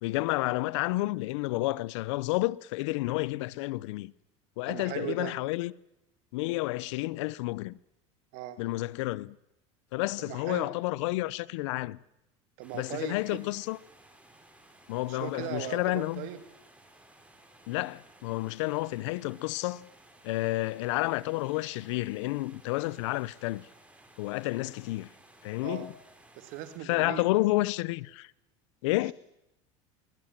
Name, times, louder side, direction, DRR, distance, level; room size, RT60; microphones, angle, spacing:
voice 1, 0.0-4.1 4.6-5.7 6.3-7.8 8.6-9.4 9.9-12.0 12.7-13.8 14.9-16.3 17.7-19.9 20.2-23.7 24.2-25.1 25.4-25.9 26.8-28.3 28.8-29.1, left 20 dB, 75° left, 0.7 m, -30 dB
voice 2, 4.7-5.3 8.3-8.6 10.2-10.7 12.6-13.4 15.1-16.4 25.6-25.9 26.4-27.2, right 12 dB, 65° right, 2.5 m, -38 dB
sound 1, 12.6-26.8, right 1 dB, 10° right, 4.1 m, -58 dB
20.5 x 20.0 x 7.5 m
supercardioid pair, 105°, 15 cm